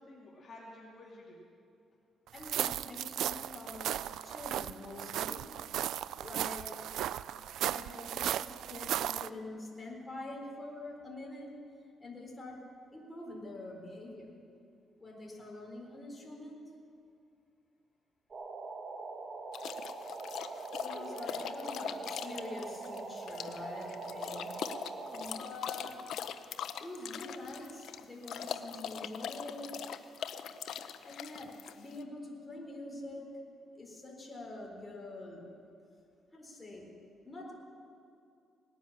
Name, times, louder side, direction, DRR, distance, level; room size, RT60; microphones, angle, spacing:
voice 1, 0.0-1.4 20.8-21.4, left 2 dB, 45° left, -5 dB, 2.7 m, -50 dB
voice 2, 2.3-3.9 4.2-5.5 6.2-6.7 7.5-11.6 12.0-12.7 12.9-14.3 15.0-16.6 20.8-24.5 25.1-26.0 26.8-29.9 31.0-33.4 33.7-35.7 36.3-36.9 37.2-37.5, left 2 dB, 15° left, -2 dB, 4.2 m, -45 dB
sound 1, 2.4-9.3, right 11 dB, 80° right, 0.3 m, -36 dB
sound 2, 18.3-25.4, right 3 dB, 40° right, 1.8 m, -43 dB
sound 3, 19.5-32.0, left 8 dB, 70° left, 0.7 m, -41 dB
19.0 x 10.0 x 7.3 m, 2.5 s
cardioid pair, 90°, 0 cm